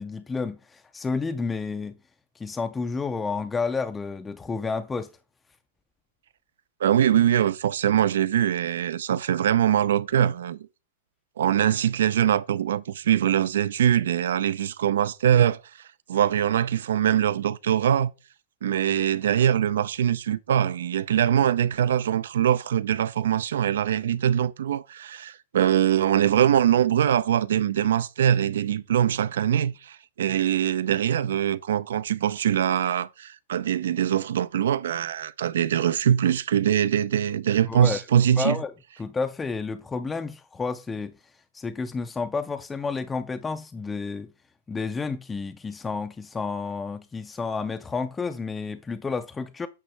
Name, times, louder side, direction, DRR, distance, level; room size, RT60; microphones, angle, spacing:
voice 1, 0.0-2.0 2.4-5.1 37.7-38.0 38.4-38.7 39.0-41.1 41.5-44.3 44.7-49.7, left 4 dB, 10° left, 0.4 m, -30 dB
voice 2, 6.8-10.6 11.4-18.1 18.6-38.6, right 10 dB, 80° right, 0.5 m, -23 dB
8.8 x 5.4 x 3.3 m
supercardioid pair, 155°, 0 cm